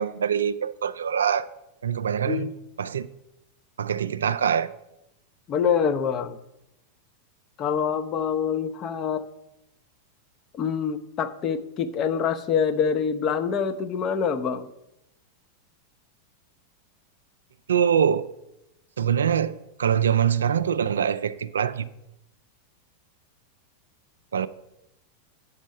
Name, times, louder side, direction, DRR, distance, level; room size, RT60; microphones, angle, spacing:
voice 1, 0.0-1.5 1.8-2.5 2.8-3.1 3.8-4.7 17.7-18.3 19.0-21.9 24.3-24.5, right 8 dB, 65° right, 0.3 m, -24 dB
voice 2, 5.5-6.4 7.6-9.2 10.5-14.7, left 7 dB, 30° left, 0.7 m, -25 dB
8.5 x 6.2 x 5.3 m
figure-of-eight pair, 90°, 0 cm